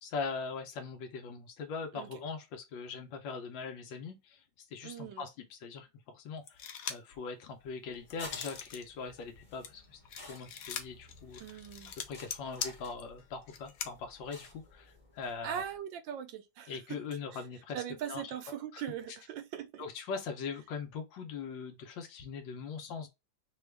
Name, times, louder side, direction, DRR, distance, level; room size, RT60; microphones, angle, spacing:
voice 1, 0.0-4.4 4.7-11.4 12.1-15.6 16.7-17.8 18.1-18.2 18.7-18.8 19.8-23.1, left 5 dB, 85° left, 1.4 m, -41 dB
voice 2, 4.8-5.2 11.4-12.0 15.4-17.0 17.3-17.4 17.7-19.8, right 10 dB, 80° right, 1.4 m, -40 dB
sound 1, 6.5-7.2 7.6-8.8 9.2-13.9, left 8 dB, 70° left, 0.9 m, -41 dB
sound 2, 7.8-15.8, left 2 dB, 20° left, 1.0 m, -53 dB
5.1 x 2.3 x 3.2 m
omnidirectional pair, 2.0 m